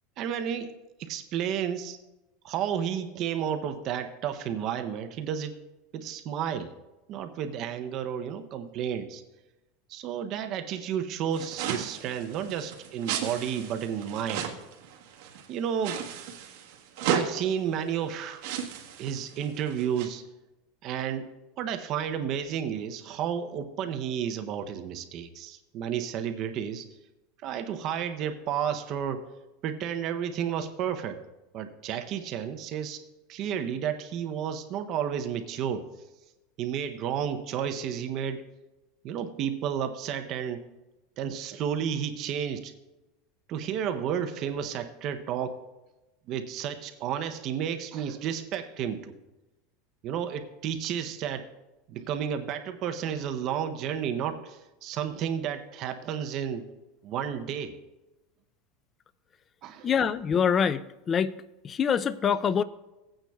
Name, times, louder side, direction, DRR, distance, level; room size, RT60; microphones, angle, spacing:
voice 1, 0.2-0.7 1.0-2.0 2.4-5.6 5.9-6.7 7.1-9.2 9.9-14.5 15.5-16.0 17.1-18.4 19.0-20.2 20.8-21.3 21.6-26.9 27.4-29.3 29.6-31.2 31.5-33.0 33.3-35.9 36.6-38.4 39.0-40.7 41.2-42.7 43.5-45.6 46.3-49.2 50.0-51.5 51.9-56.7 57.0-57.8 59.6-59.9, right 8 dB, 40° right, 7 dB, 0.6 m, -32 dB
sound 1, 11.3-15.5 15.8-17.3 18.0-18.1 18.4-20.1, right 8 dB, 65° right, 1.4 m, -34 dB
voice 2, 59.8-60.8 61.1-61.3 61.6-62.6, left 7 dB, 25° left, 16 dB, 0.3 m, -24 dB
17.0 x 8.8 x 2.3 m, 1.0 s
supercardioid pair, 150°, 0 cm